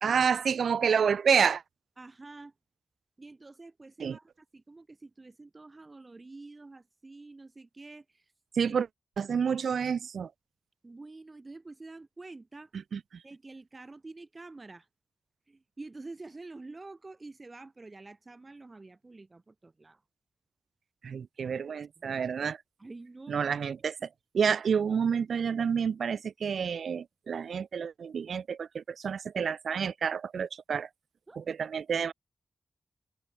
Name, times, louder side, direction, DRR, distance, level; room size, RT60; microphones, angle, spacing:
voice 1, 0.0-1.6 4.0-4.2 8.5-8.9 9.2-10.3 12.9-13.2 21.0-22.6 23.3-24.1 24.3-30.9 31.4-32.1, right 6 dB, 85° right, 0.4 m, -29 dB
voice 2, 2.0-2.5 3.2-8.3 8.6-8.8 10.8-12.7 13.2-14.9 15.5-20.0 21.4-22.2 22.8-23.4 31.3-31.4, right 3 dB, 30° right, 2.2 m, -48 dB
wide cardioid pair, 125°, 0 cm